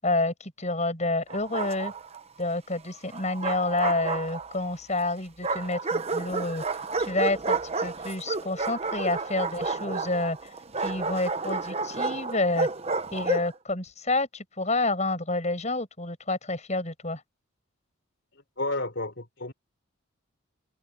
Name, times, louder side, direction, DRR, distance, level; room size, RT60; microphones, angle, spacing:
voice 1, 0.0-1.9 2.4-6.6 7.0-10.4 10.8-12.7 13.1-17.2, left 2 dB, 35° left, 7.8 m, -29 dB
Bark, 1.3-2.2 3.1-4.7 5.4-13.5, right 4 dB, 30° right, 0.9 m, -31 dB
voice 2, 18.6-19.5, left 2 dB, 60° left, 3.7 m, -31 dB
head